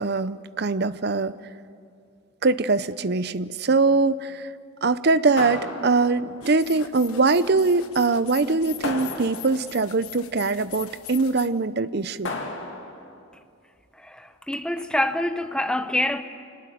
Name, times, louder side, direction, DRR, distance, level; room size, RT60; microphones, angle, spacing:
voice 1, 0.0-1.4 2.4-4.5 4.8-12.3, right 3 dB, 50° right, 0.6 m, -22 dB
sound 1, 5.4-6.4 8.8-9.8 12.2-13.1, left 2 dB, 55° left, 2.5 m, -33 dB
sound 2, 6.4-11.5, left 11 dB, 85° left, 1.2 m, -42 dB
voice 2, 14.0-16.2, left 1 dB, 5° left, 0.8 m, -26 dB
25.5 x 19.0 x 9.3 m
head